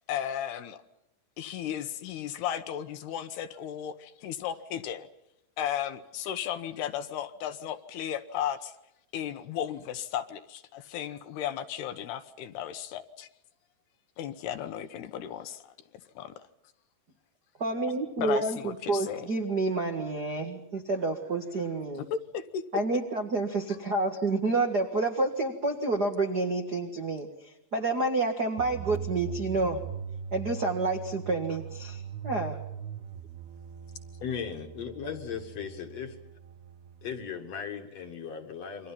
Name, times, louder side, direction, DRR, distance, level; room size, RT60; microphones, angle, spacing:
voice 1, 0.1-0.8 1.4-5.1 5.6-8.7 9.1-13.3 14.2-15.7 16.2-16.3 18.2-19.3 22.0-22.6, left 10 dB, 75° left, 9 dB, 3.0 m, -35 dB
voice 2, 17.6-22.0 22.7-27.3 27.7-29.8 30.3-32.5, right 3 dB, 55° right, 4 dB, 1.1 m, -29 dB
sound 1, 28.6-37.4, right 8 dB, 70° right, 2.8 m, -41 dB
voice 3, 34.2-36.1 37.0-38.9, left 7 dB, 50° left, 6 dB, 2.4 m, -37 dB
29.0 x 24.5 x 5.8 m, 0.84 s
omnidirectional pair, 4.9 m